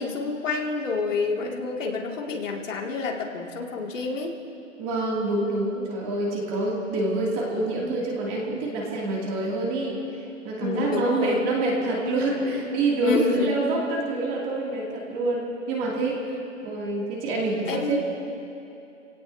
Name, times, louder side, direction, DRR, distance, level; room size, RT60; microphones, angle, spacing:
voice 1, 0.0-4.3 10.6-11.4 13.0-13.5 17.7-18.0, left 4 dB, 70° left, -1 dB, 2.6 m, -28 dB
voice 2, 4.8-10.0 10.4-16.2 16.6-18.0, right 2 dB, 20° right, -3 dB, 2.7 m, -26 dB
27.0 x 17.5 x 2.8 m, 2.9 s
hypercardioid pair, 155°, 39 cm